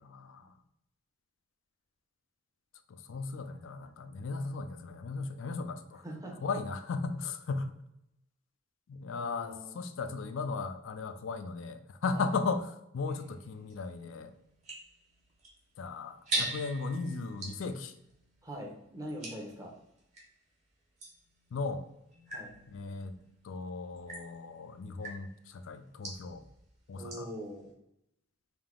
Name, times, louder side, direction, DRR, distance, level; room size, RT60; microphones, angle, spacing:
voice 1, 0.0-0.5 2.9-6.0 6.4-7.7 8.9-14.3 15.8-17.9 21.5-21.9 22.7-23.1 23.4-26.5 26.9-27.3, left 4 dB, 75° left, 9 dB, 0.4 m, -36 dB
voice 2, 6.0-6.4 9.1-9.7 12.1-12.3 16.3-16.5 18.4-19.7 22.3-22.5 27.0-27.7, equal, 15° right, -1 dB, 0.8 m, -42 dB
sound 1, 13.1-20.3 21.0-27.4, right 2 dB, 35° right, 1.2 m, -43 dB
3.5 x 2.8 x 3.6 m, 0.81 s
head